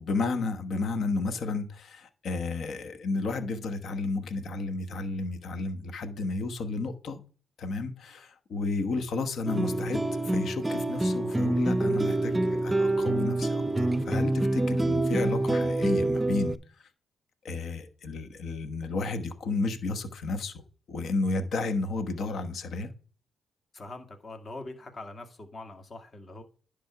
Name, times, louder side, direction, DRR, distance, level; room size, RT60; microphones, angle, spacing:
voice 1, 0.0-7.2 7.6-16.6 17.4-20.5 20.9-22.9, left 3 dB, 70° left, 1.1 m, -32 dB
sound 1, 9.5-16.6, right 2 dB, 20° right, 0.5 m, -26 dB
voice 2, 23.7-26.4, left 2 dB, 45° left, 1.8 m, -43 dB
10.0 x 3.5 x 5.8 m
supercardioid pair, 55°, 0 cm